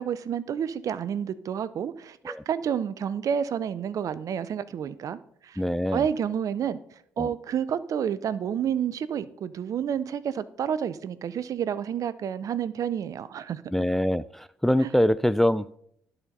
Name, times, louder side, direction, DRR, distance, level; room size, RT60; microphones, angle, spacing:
voice 1, 0.0-5.6 5.9-6.8 7.2-13.6 14.8-14.9, right 8 dB, 55° right, 0.5 m, -29 dB
voice 2, 5.6-6.0 7.2-7.3 13.7-15.7, left 1 dB, 5° left, 0.3 m, -24 dB
11.0 x 4.3 x 5.2 m
hypercardioid pair, 55°, 7 cm